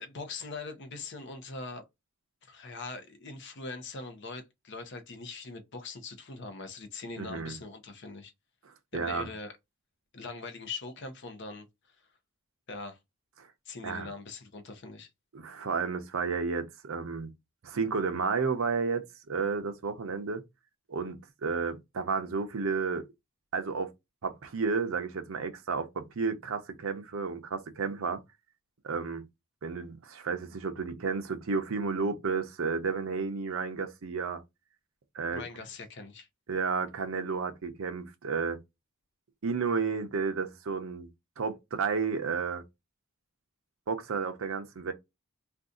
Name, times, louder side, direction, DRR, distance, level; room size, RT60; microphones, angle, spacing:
voice 1, 0.0-1.8 2.4-8.3 8.9-9.5 10.1-11.7 12.7-13.0 13.7-15.1 35.3-36.3, left 3 dB, 50° left, 0.6 m, -42 dB
voice 2, 7.2-7.6 8.9-9.3 13.4-13.5 13.8-14.1 15.3-17.3 17.6-20.4 20.9-23.1 23.5-23.9 24.2-28.2 28.8-29.2 29.6-34.4 35.1-35.4 36.5-38.6 39.4-41.1 41.4-42.6 43.9-44.9, right 5 dB, 65° right, 0.6 m, -32 dB
2.6 x 2.3 x 3.7 m
head